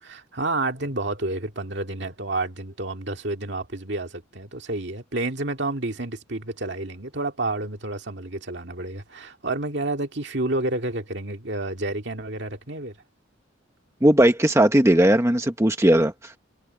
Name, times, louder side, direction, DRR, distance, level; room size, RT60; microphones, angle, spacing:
voice 1, 0.0-12.9, right 2 dB, 60° right, 2.2 m, -30 dB
voice 2, 14.0-16.4, right 1 dB, 15° right, 1.1 m, -18 dB
head